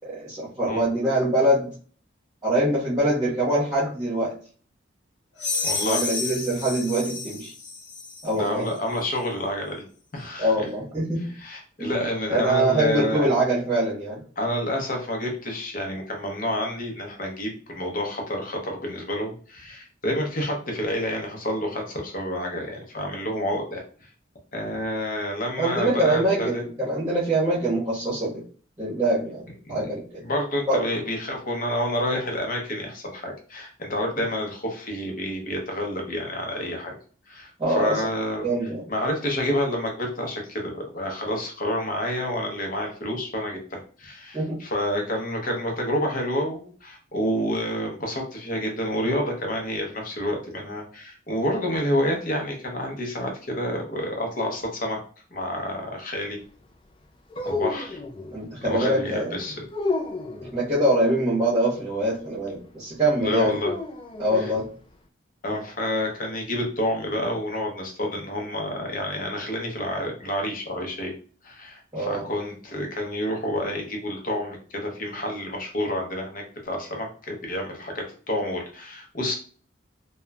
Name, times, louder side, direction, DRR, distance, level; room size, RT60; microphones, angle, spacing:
voice 1, 0.0-1.7 2.4-4.3 5.8-7.5 8.2-8.6 10.4-11.3 11.8-12.0 12.3-14.2 25.6-28.4 28.8-30.2 30.7-30.9 37.6-38.0 38.4-38.8 44.3-44.6 58.3-59.4 60.4-63.6 64.2-64.7 71.9-72.2, right 1 dB, 20° right, -9 dB, 0.8 m, -24 dB
sound 1, 5.4-8.4, left 4 dB, 85° left, 0.8 m, -30 dB
voice 2, 5.6-6.0 8.4-9.8 10.1-10.7 11.3-13.3 14.4-23.8 24.5-26.6 29.7-29.9 30.2-37.0 37.3-38.5 38.9-55.0 55.3-56.4 57.4-58.0 58.6-59.6 63.2-63.7 64.3-64.5 65.4-71.1 71.4-79.4, left 1 dB, 45° left, 1 dB, 0.7 m, -29 dB
sound 2, 57.3-58.4 59.7-60.5 63.6-64.6, left 3 dB, 25° left, 0.3 m, -30 dB
2.9 x 2.1 x 2.3 m, 0.41 s
head